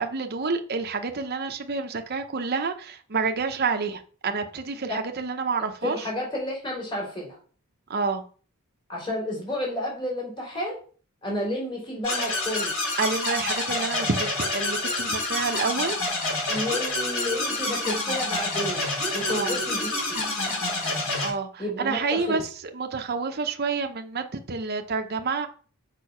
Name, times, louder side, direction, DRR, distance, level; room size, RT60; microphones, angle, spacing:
voice 1, 0.0-6.0 7.9-8.2 13.0-16.0 19.3-19.6 21.2-25.5, right 4 dB, 45° right, 6 dB, 0.8 m, -28 dB
voice 2, 5.8-7.4 8.9-10.8 11.2-12.7 16.5-18.9 19.1-20.2 21.6-22.4, left 1 dB, 25° left, -2 dB, 3.9 m, -31 dB
sound 1, 12.0-21.3, left 2 dB, 65° left, 5.0 m, -28 dB
6.6 x 5.3 x 5.6 m, 0.41 s
head